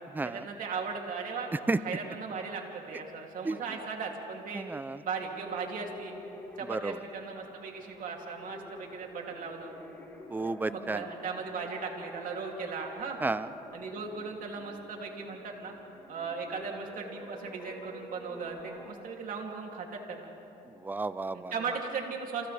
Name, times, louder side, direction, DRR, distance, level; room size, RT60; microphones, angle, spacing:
voice 1, 0.2-1.5 1.8-4.7 5.0-6.1 6.6-9.7 10.7-13.2 13.7-15.7 16.1-20.3 21.3-22.5, right 5 dB, 55° right, 1 dB, 2.9 m, -37 dB
voice 2, 4.5-5.0 6.7-6.9 10.3-11.1 13.2-13.5 20.8-21.5, right 3 dB, 10° right, 15 dB, 0.5 m, -31 dB
sound 1, 5.4-18.9, left 1 dB, 15° left, 2.7 m, -48 dB
28.5 x 28.0 x 3.4 m, 2.9 s
cardioid pair, 110°, 17 cm